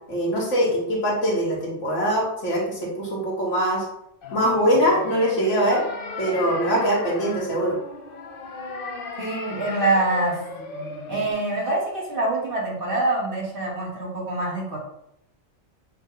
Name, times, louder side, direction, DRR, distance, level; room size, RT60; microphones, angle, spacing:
voice 1, 0.1-3.9 4.3-5.8 6.2-7.8, equal, 85° left, -3 dB, 1.7 m, -22 dB
sound 1, 4.2-11.3, left 3 dB, 55° left, 0.8 m, -35 dB
voice 2, 9.2-10.3 11.1-14.8, right 2 dB, 50° right, -4 dB, 1.5 m, -25 dB
6.3 x 2.2 x 3.7 m, 0.79 s
omnidirectional pair, 1.2 m